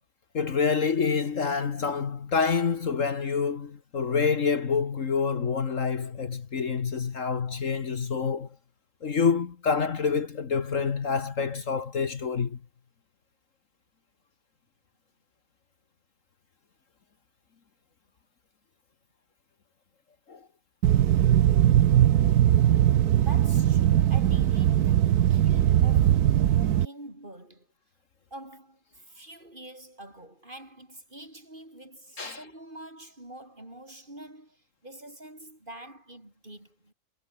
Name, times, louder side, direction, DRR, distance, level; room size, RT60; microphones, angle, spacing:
voice 1, 0.3-8.5 9.0-12.6 20.3-20.4 32.2-32.4, left 5 dB, 55° left, 1.8 m, -27 dB
sound 1, 20.8-26.9, right 11 dB, 80° right, 1.4 m, -20 dB
voice 2, 23.2-27.7 28.3-36.9, right 1 dB, 30° right, 6.6 m, -46 dB
omnidirectional pair, 1.6 m